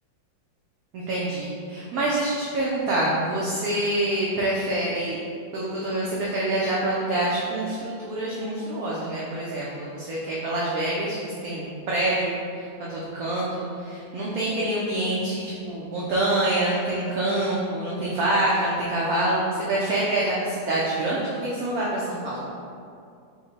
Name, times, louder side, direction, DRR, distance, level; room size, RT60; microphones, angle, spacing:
voice 1, 0.9-5.2 5.5-22.5, right 1 dB, 70° right, -6 dB, 0.9 m, -26 dB
4.8 x 2.2 x 4.0 m, 2.4 s
omnidirectional pair, 2.1 m